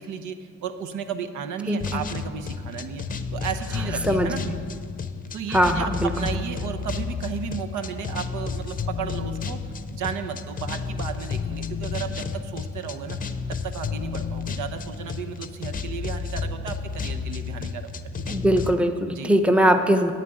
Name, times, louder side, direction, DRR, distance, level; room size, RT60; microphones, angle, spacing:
voice 1, 0.0-4.4 5.3-9.6 9.9-13.3 13.6-17.9 19.1-19.3, right 7 dB, 75° right, 7 dB, 0.9 m, -34 dB
voice 2, 1.7-2.0 4.1-4.3 5.5-6.1 18.3-20.1, equal, 5° right, 7 dB, 0.7 m, -21 dB
sound 1, 1.8-18.7, left 5 dB, 30° left, 0.7 m, -32 dB
8.9 x 7.6 x 9.0 m, 2.1 s
cardioid pair, 90°, 30 cm